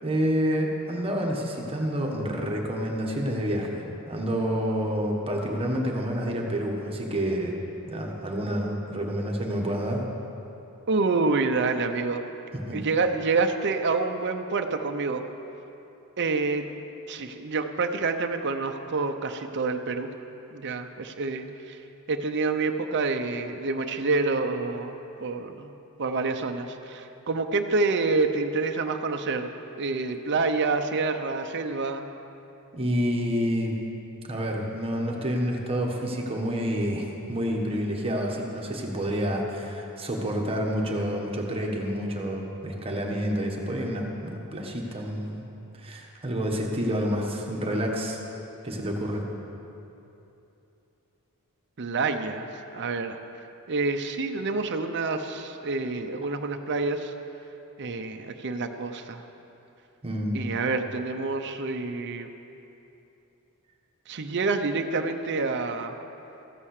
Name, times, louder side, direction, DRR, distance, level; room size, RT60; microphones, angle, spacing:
voice 1, 0.0-7.6 7.9-10.0 12.5-12.8 32.7-33.8 34.3-45.4 45.8-48.2 48.6-49.2 60.0-60.5, equal, 25° right, 0 dB, 1.5 m, -28 dB
voice 2, 10.9-12.2 12.7-15.2 16.2-16.7 17.1-20.1 20.5-21.8 22.1-25.7 26.0-29.5 29.8-32.0 51.8-53.2 53.7-57.1 57.8-59.2 60.3-62.3 64.1-66.0, right 3 dB, 55° right, 6 dB, 0.7 m, -27 dB
14.5 x 8.9 x 6.6 m, 2.9 s
head